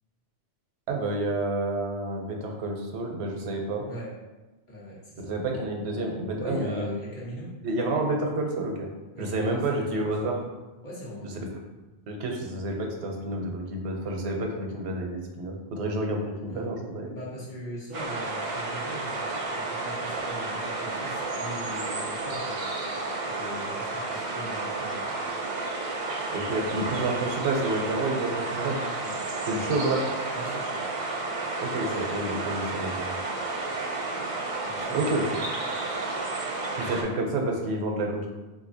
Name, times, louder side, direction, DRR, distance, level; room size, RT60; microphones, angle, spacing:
voice 1, 0.9-3.8 5.2-6.9 7.6-8.9 9.2-10.4 12.1-17.1 26.3-28.8 29.5-30.0 31.6-33.2 34.9-35.2 36.8-38.3, right 2 dB, 85° right, 1 dB, 0.9 m, -29 dB
voice 2, 4.7-5.4 6.4-7.5 9.1-10.4 10.8-11.4 16.5-16.7 17.1-22.7 23.2-25.1 28.5-29.3 30.3-30.8 34.6-35.3, equal, 50° left, -6 dB, 1.0 m, -41 dB
sound 1, 17.9-37.0, right 3 dB, 50° right, 0.4 m, -32 dB
3.7 x 2.7 x 2.6 m, 1.1 s
omnidirectional pair, 1.1 m